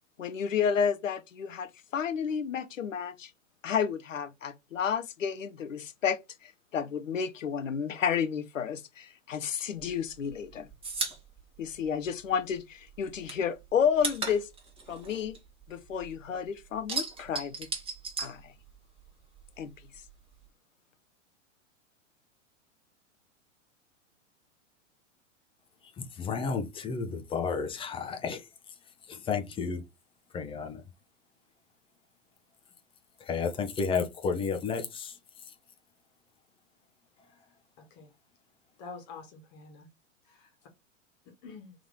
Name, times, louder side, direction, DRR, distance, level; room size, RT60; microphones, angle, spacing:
voice 1, 0.2-3.3 3.6-10.7 11.6-14.5 14.9-15.4 15.7-17.7 18.2-18.5 19.6-19.7, left 7 dB, 80° left, 0.7 m, -31 dB
sound 1, 9.8-12.6 12.9-16.2 16.5-19.1 19.3-20.5, right 4 dB, 15° right, 1.3 m, -37 dB
voice 2, 26.2-28.4 29.1-29.8 30.3-30.8 33.2-35.2, left 5 dB, 15° left, 0.6 m, -32 dB
voice 3, 37.8-38.1 38.8-39.9 40.2-40.5 41.3-41.7, left 4 dB, 40° left, 1.3 m, -47 dB
3.6 x 2.9 x 3.8 m
figure-of-eight pair, 105°, 38 cm